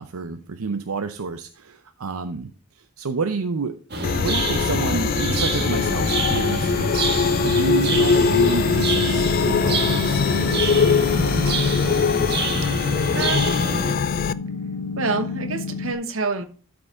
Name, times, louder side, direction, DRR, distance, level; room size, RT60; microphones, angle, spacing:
voice 1, 0.0-11.7, right 4 dB, 80° right, 0.6 m, -30 dB
sound 1, 3.9-13.9, right 2 dB, 45° right, 1.6 m, -27 dB
sound 2, 4.0-14.3, left 5 dB, 40° left, 0.3 m, -22 dB
sound 3, 5.6-15.9, left 4 dB, 85° left, 1.3 m, -31 dB
voice 2, 13.0-13.7 15.0-16.5, right 3 dB, 65° right, 1.1 m, -27 dB
12.5 x 5.2 x 3.6 m
head